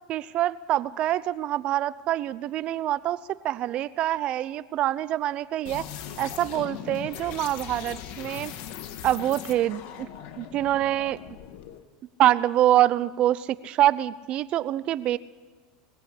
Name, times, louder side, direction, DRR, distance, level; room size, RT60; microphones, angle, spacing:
voice 1, 0.1-3.2 3.4-5.8 6.2-8.5 9.0-9.8 10.4-11.2 12.2-15.2, right 13 dB, 45° right, 17 dB, 0.7 m, -25 dB
sound 1, 5.7-11.8, left 9 dB, 60° left, 1.9 m, -39 dB
20.5 x 16.0 x 8.6 m, 1.4 s
supercardioid pair, 110°, 2 cm